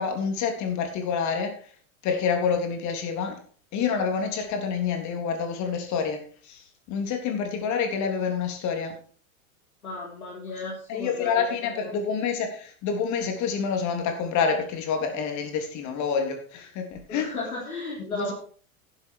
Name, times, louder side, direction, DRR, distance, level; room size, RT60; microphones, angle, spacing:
voice 1, 0.0-1.7 2.0-3.4 3.7-8.9 10.9-17.3 18.0-18.3, left 6 dB, 40° left, 3.5 m, -28 dB
voice 2, 9.8-11.5 11.8-11.9 17.1-18.3, left 2 dB, 80° left, 4.0 m, -34 dB
11.0 x 10.5 x 4.6 m
figure-of-eight pair, 90°, 43 cm